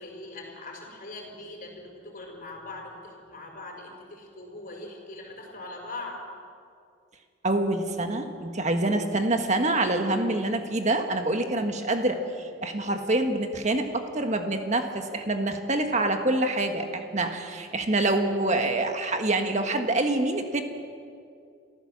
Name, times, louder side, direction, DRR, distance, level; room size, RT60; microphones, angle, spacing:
voice 1, 0.0-6.2, left 2 dB, 40° left, 0 dB, 5.4 m, -41 dB
voice 2, 7.4-20.6, right 2 dB, 35° right, 5 dB, 1.7 m, -26 dB
28.0 x 14.5 x 7.4 m, 2.4 s
head